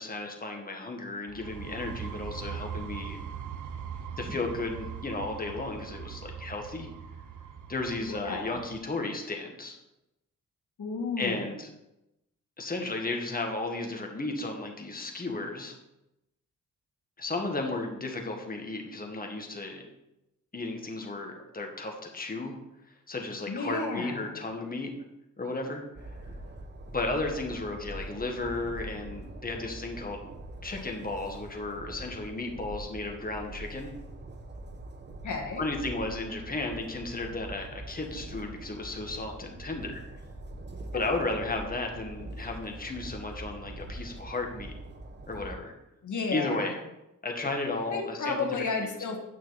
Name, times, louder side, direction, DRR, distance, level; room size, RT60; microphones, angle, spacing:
voice 1, 0.0-3.2 4.2-6.9 7.7-9.8 11.2-11.7 12.6-15.7 17.2-19.9 20.5-22.6 23.1-24.9 25.4-26.1 26.9-30.3 30.6-33.9 35.6-40.0 40.9-44.7 45.3-45.7 46.3-46.8 47.2-49.0, left 2 dB, 25° left, 2 dB, 1.8 m, -34 dB
sound 1, 1.3-8.9, right 7 dB, 65° right, 0.8 m, -41 dB
voice 2, 8.1-8.5 10.8-11.5 23.5-24.2 35.2-35.6 40.9-41.0 46.0-46.7 47.9-49.2, left 4 dB, 65° left, 2 dB, 1.9 m, -32 dB
Train, 26.0-45.6, right 2 dB, 30° right, 1.1 m, -43 dB
9.2 x 6.2 x 4.1 m, 0.92 s
cardioid pair, 80°, 33 cm